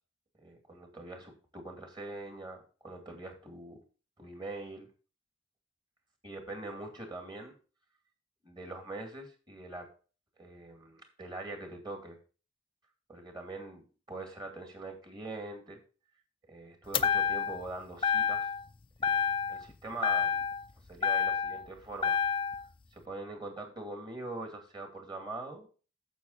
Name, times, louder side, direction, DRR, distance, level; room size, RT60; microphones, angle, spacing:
voice 1, 0.4-3.8 4.2-4.9 6.2-7.5 8.4-9.9 10.4-12.2 13.1-15.8 16.5-18.5 19.0-20.3 20.9-22.2 22.9-25.7, right 2 dB, 25° right, 3 dB, 2.6 m, -43 dB
sound 1, 16.9-17.7 18.0-18.7 19.0-19.7 20.0-21.7 22.0-22.6, left 7 dB, 25° left, 0.4 m, -29 dB
9.2 x 7.4 x 4.1 m, 0.36 s
head